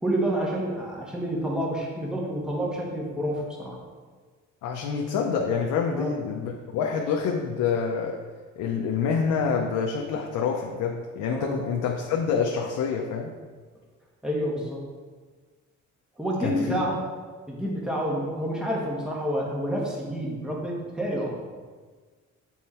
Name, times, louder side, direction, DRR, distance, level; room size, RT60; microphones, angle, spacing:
voice 1, 0.0-3.8 5.9-6.1 11.3-11.5 14.2-14.8 16.2-17.0 17.5-21.4, right 1 dB, ahead, -3 dB, 1.6 m, -28 dB
voice 2, 4.6-8.2 8.6-13.3 16.4-16.8, left 6 dB, 85° left, 1 dB, 0.7 m, -27 dB
7.3 x 4.6 x 4.3 m, 1.4 s
cardioid pair, 90°, 30 cm